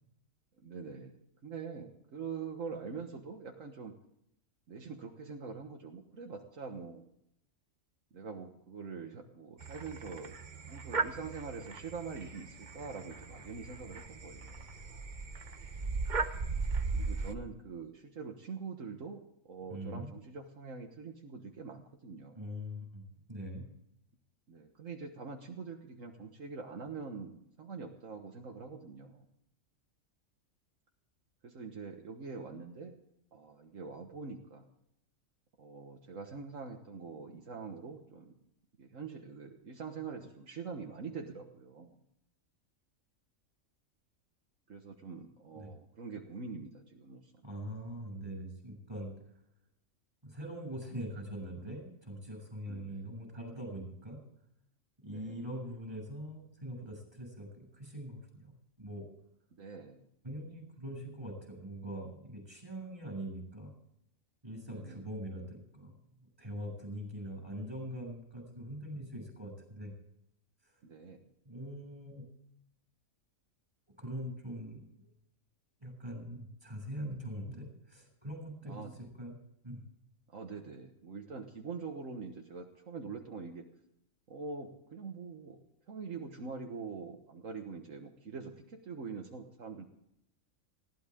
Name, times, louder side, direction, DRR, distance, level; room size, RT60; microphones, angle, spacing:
voice 1, 0.6-1.1 1.4-4.0 4.7-7.1 8.1-10.4 10.7-14.7 16.9-22.5 24.5-29.3 31.4-32.9 33.3-34.7 35.6-38.3 38.8-42.0 44.7-47.3 52.7-53.1 55.1-55.4 59.6-60.1 64.7-65.0 70.8-71.3 78.7-79.0 80.3-83.7 84.3-85.6 85.9-89.9, right 5 dB, 75° right, 3 dB, 1.8 m, -44 dB
sound 1, 9.6-17.3, right 4 dB, 40° right, 1.1 m, -37 dB
voice 2, 19.7-20.1 22.3-23.0 23.3-23.7 45.5-45.7 47.4-49.1 50.2-54.2 55.0-58.5 58.8-59.1 60.2-63.7 64.4-65.9 66.4-69.9 70.6-70.7 71.4-72.3 74.0-75.1 75.8-79.3 79.6-79.8, equal, 20° right, 2 dB, 7.4 m, -42 dB
20.5 x 16.5 x 3.7 m, 0.75 s
omnidirectional pair, 1.4 m